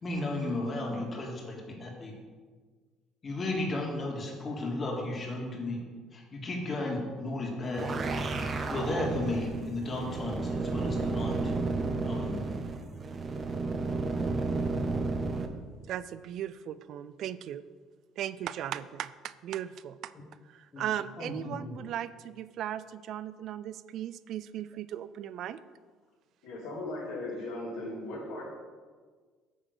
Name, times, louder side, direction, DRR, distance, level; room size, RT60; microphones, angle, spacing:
voice 1, 0.0-2.1 3.2-5.8 6.1-7.9 8.7-11.5 12.0-12.4 20.7-20.8 21.2-21.7, left 2 dB, 35° left, -1 dB, 2.1 m, -34 dB
sound 1, 7.6-15.5, right 3 dB, 35° right, 0.8 m, -32 dB
voice 2, 15.9-17.6 18.2-20.1 20.5-25.6, right 11 dB, 65° right, 15 dB, 0.3 m, -37 dB
voice 3, 26.4-28.4, left 2 dB, 75° left, -3 dB, 2.5 m, -37 dB
9.0 x 3.7 x 6.5 m, 1.5 s
supercardioid pair, 90°, 0 cm